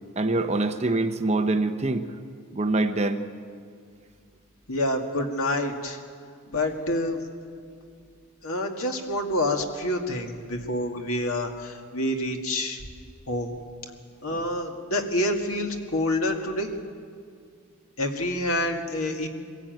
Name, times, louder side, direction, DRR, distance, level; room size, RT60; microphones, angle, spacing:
voice 1, 0.2-2.0 2.5-3.3 14.3-14.4, right 2 dB, 30° right, 8 dB, 0.8 m, -25 dB
voice 2, 4.7-6.0 6.5-7.2 8.4-12.8 13.3-13.5 14.2-16.7 18.0-19.3, left 1 dB, 70° left, 3 dB, 2.1 m, -27 dB
23.0 x 16.0 x 9.2 m, 2.2 s
head